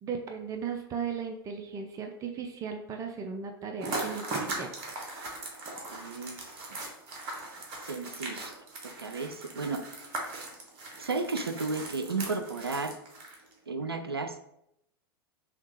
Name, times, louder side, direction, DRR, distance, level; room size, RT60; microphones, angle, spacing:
voice 1, 0.0-4.7, right 6 dB, 25° right, 4 dB, 0.4 m, -36 dB
sound 1, 3.8-13.5, right 2 dB, 40° right, 1.0 m, -39 dB
voice 2, 5.9-6.4 6.7-6.8 7.8-8.5 8.8-9.8 11.0-13.0 13.7-14.4, right 3 dB, 85° right, 9 dB, 0.4 m, -33 dB
5.7 x 2.3 x 2.9 m, 0.79 s
figure-of-eight pair, 90°, 13 cm